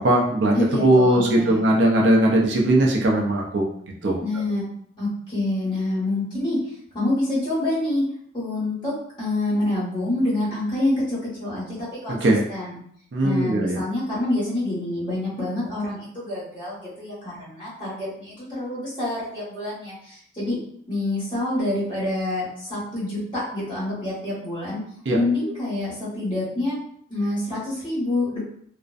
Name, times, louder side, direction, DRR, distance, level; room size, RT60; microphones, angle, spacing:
voice 1, 0.0-3.7 4.0-4.2 12.2-12.4 13.1-13.8 25.1-25.2, right 1 dB, 65° right, -1 dB, 0.4 m, -19 dB
voice 2, 0.5-1.6 4.2-4.6 5.0-6.6 6.9-8.0 8.3-12.8 13.2-20.6 20.9-24.8 25.1-26.8 27.1-28.4, left 2 dB, 25° left, -9 dB, 1.2 m, -27 dB
2.5 x 2.1 x 2.4 m, 0.65 s
head